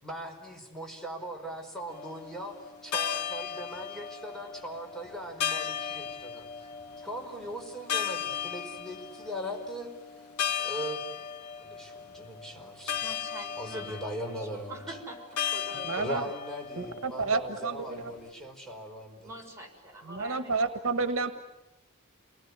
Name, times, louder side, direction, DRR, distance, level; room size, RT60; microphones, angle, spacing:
voice 1, 0.0-2.6 2.8-6.7 7.0-9.9 10.6-11.0 11.6-13.2 13.6-15.0 16.0-19.3, equal, ahead, 1 dB, 5.0 m, -39 dB
sound 1, 1.9-18.3, left 8 dB, 90° left, 2.1 m, -37 dB
voice 2, 13.0-14.0 14.3-16.0 19.2-20.6, right 1 dB, 15° right, -1 dB, 6.0 m, -44 dB
voice 3, 15.7-16.2 16.8-18.1 20.0-21.3, right 4 dB, 65° right, 8 dB, 1.4 m, -30 dB
29.0 x 20.5 x 9.7 m, 1.0 s
head